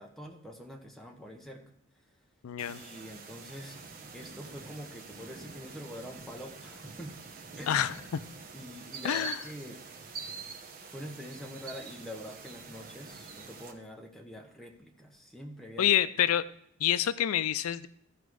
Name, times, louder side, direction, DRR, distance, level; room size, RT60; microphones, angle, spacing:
voice 1, 0.0-1.6 2.7-3.8 4.1-7.1 7.6-7.8 8.5-9.9 10.9-16.0, equal, ahead, 1 dB, 1.1 m, -45 dB
voice 2, 2.4-2.8 7.7-7.9 9.0-9.4 15.8-16.5 16.8-17.9, left 10 dB, 90° left, 15 dB, 0.4 m, -27 dB
sound 1, 2.6-13.7, right 5 dB, 40° right, 1.0 m, -46 dB
14.5 x 5.1 x 4.7 m, 0.69 s
head